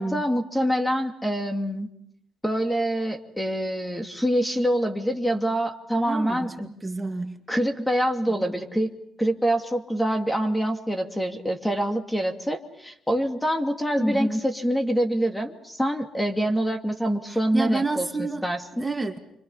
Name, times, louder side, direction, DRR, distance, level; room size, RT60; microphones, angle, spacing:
voice 1, 0.0-1.9 2.4-6.7 7.5-8.9 9.2-18.9, equal, 5° left, 5 dB, 2.5 m, -25 dB
voice 2, 6.0-7.4 8.4-8.6 14.0-14.4 17.3-18.4 18.8-19.2, right 2 dB, 15° right, 4 dB, 2.3 m, -29 dB
29.0 x 25.5 x 5.6 m, 0.75 s
cardioid pair, 90°, 0 cm